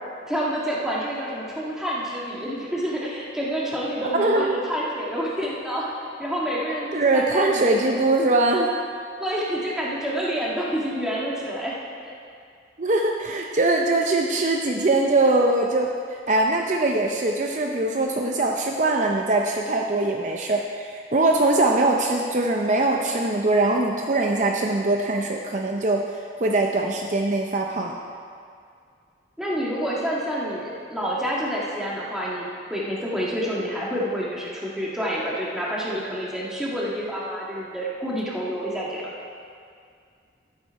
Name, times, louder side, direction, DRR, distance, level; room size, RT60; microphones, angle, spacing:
voice 1, 0.3-5.9 6.2-7.6 9.2-12.1 29.4-39.1, equal, 5° right, -6 dB, 1.7 m, -28 dB
voice 2, 4.1-4.6 6.9-8.7 12.8-28.0, right 2 dB, 40° right, 1 dB, 0.6 m, -22 dB
13.0 x 7.6 x 4.6 m, 2.3 s
head